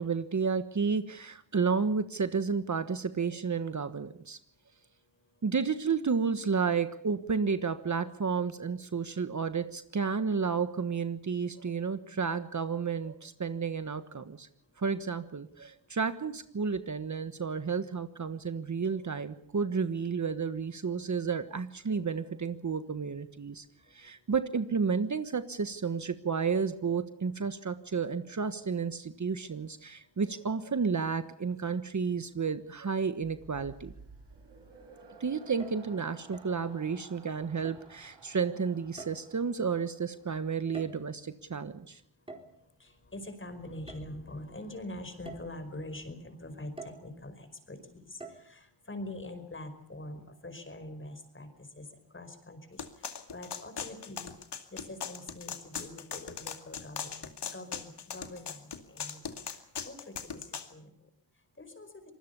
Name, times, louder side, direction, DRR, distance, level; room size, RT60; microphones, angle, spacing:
voice 1, 0.0-4.4 5.4-14.5 14.8-23.6 23.9-33.9 35.2-42.0, right 5 dB, 45° right, 11 dB, 1.3 m, -31 dB
sound 1, 33.2-40.6, right 3 dB, 75° right, 7.9 m, -54 dB
sound 2, 35.5-35.9 36.3-36.6 37.6-38.0 39.0-39.5 40.5-41.2 42.3-42.6 43.9-44.0 44.6-44.7 45.3-45.6 46.8-47.1 48.2-48.4, right 2 dB, 15° right, 4.2 m, -46 dB
voice 2, 42.8-51.5 51.8-51.9 52.1-54.3 54.7-59.2 59.8-60.4 60.7-60.9 61.6-61.9, left 1 dB, 30° left, 9 dB, 5.1 m, -44 dB
sound 3, 52.8-60.7, left 7 dB, 70° left, 2.4 m, -39 dB
25.5 x 20.0 x 6.9 m, 0.68 s
cardioid pair, 85°, 42 cm